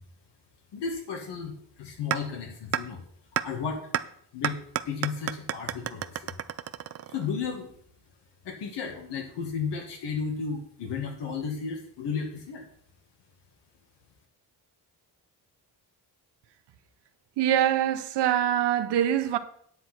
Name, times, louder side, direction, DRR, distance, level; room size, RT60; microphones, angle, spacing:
voice 1, 0.7-3.0 3.4-3.9 4.3-6.3 7.1-7.7 8.4-12.6, left 5 dB, 85° left, 2.0 m, -34 dB
sound 1, 2.1-2.2 2.7-2.8 3.4-3.5 3.9-4.0 4.4-7.4, right 11 dB, 40° right, 0.4 m, -29 dB
voice 2, 17.4-19.4, right 11 dB, 80° right, 1.0 m, -24 dB
9.8 x 9.3 x 4.4 m
cardioid pair, 175°, 41 cm